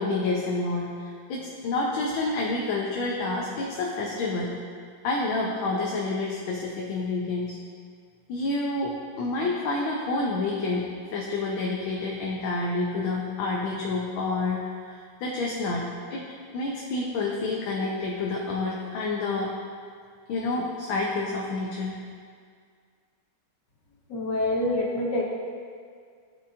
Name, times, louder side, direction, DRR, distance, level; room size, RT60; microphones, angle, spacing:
voice 1, 0.0-4.5 5.0-7.6 8.3-15.8 16.1-16.3 16.5-19.5 20.3-22.0, left 3 dB, 80° left, -2 dB, 1.6 m, -28 dB
voice 2, 24.1-25.2, left 1 dB, 60° left, -3 dB, 1.8 m, -26 dB
15.0 x 5.7 x 2.5 m, 2.1 s
omnidirectional pair, 2.2 m